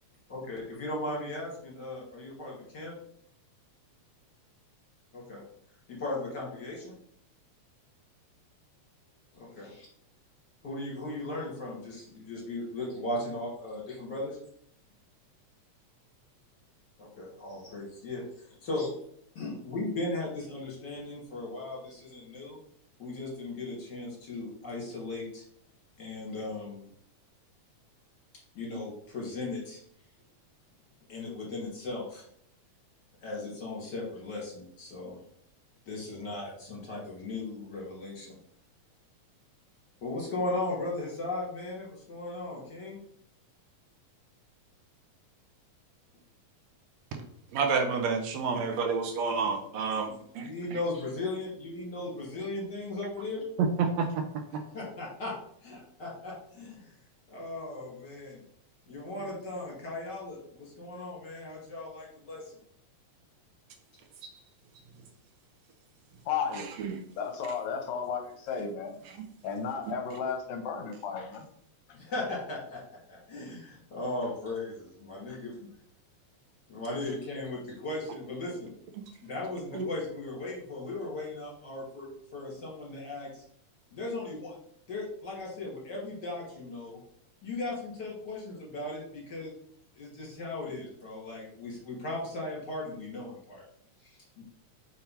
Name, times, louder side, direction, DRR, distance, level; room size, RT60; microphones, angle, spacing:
voice 1, 0.3-2.9 5.1-5.4 5.9-6.9 9.4-9.9 10.6-14.4 17.0-18.9 19.3-22.6 23.0-25.4 26.0-26.9 28.5-29.8 31.1-32.2 33.2-35.2 35.9-38.4 40.0-43.0 50.0-53.4 54.6-55.3 55.6-56.9 57.3-58.4 58.9-62.6 71.9-72.8 73.1-75.5 76.7-78.7 79.2-83.4 83.9-84.5 84.9-87.0 87.4-89.5 89.9-93.6 94.0-94.4, left 2 dB, 35° left, -4 dB, 2.8 m, -37 dB
voice 2, 47.5-50.5 53.6-54.3 54.5-54.6 66.8-67.0 79.7-79.8, right 5 dB, 80° right, 5 dB, 1.8 m, -29 dB
voice 3, 66.3-66.7 67.2-68.9 69.4-71.5, left 6 dB, 75° left, 4 dB, 1.9 m, -33 dB
5.8 x 4.3 x 4.3 m, 0.68 s
omnidirectional pair, 3.3 m